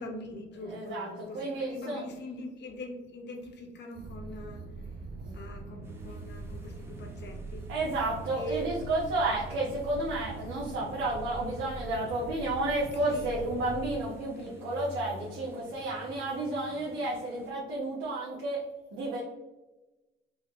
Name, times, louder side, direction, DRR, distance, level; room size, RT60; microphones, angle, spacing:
voice 1, 0.0-4.7 5.3-7.7 8.3-8.7 13.1-13.3, left 1 dB, 60° left, 3 dB, 0.8 m, -42 dB
voice 2, 0.6-2.1 5.2-5.3 7.7-18.6 18.9-19.2, right 2 dB, 85° right, -5 dB, 0.9 m, -32 dB
sound 1, 4.0-14.0, right 3 dB, 50° right, 0.6 m, -42 dB
sound 2, 5.8-17.5, equal, 10° right, 0.7 m, -50 dB
4.4 x 2.8 x 2.3 m, 1.1 s
cardioid pair, 90°, 20 cm